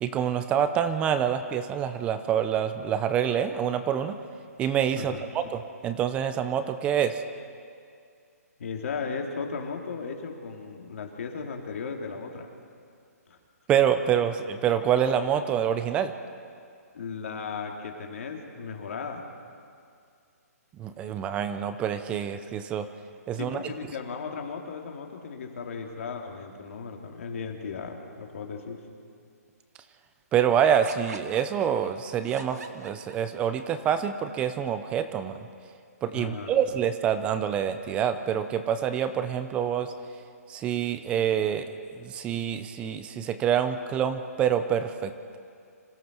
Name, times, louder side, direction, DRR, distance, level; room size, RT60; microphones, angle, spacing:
voice 1, 0.0-4.2 4.6-7.2 13.7-16.1 20.8-22.9 23.3-23.6 30.3-35.4 36.0-39.9 40.5-45.4, right 9 dB, 10° right, 10 dB, 0.6 m, -26 dB
voice 2, 4.9-5.3 8.6-12.5 13.3-13.4 16.9-19.2 23.3-28.8 36.1-36.5, left 5 dB, 55° left, 2 dB, 2.8 m, -36 dB
sound 1, 30.8-33.6, right 5 dB, 70° right, 1.8 m, -44 dB
26.5 x 16.5 x 6.1 m, 2.3 s
hypercardioid pair, 160°, 9 cm